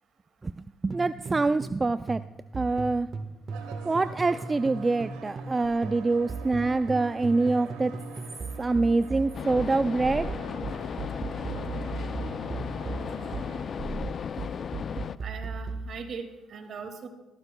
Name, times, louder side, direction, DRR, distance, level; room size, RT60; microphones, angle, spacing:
voice 1, 0.8-2.2 2.5-3.1 3.9-7.9 8.6-10.3, right 3 dB, 30° right, 12 dB, 0.3 m, -25 dB
sound 1, 0.9-1.8 2.1-5.6 5.8-15.9, right 3 dB, 45° right, 1.4 m, -37 dB
sound 2, 3.5-13.6, right 5 dB, 90° right, 1.4 m, -45 dB
sound 3, 9.3-15.2, left 7 dB, 55° left, 0.4 m, -35 dB
voice 2, 15.2-17.1, right 5 dB, 60° right, 6 dB, 2.1 m, -39 dB
16.0 x 14.0 x 2.2 m, 1.0 s
supercardioid pair, 60°, 0 cm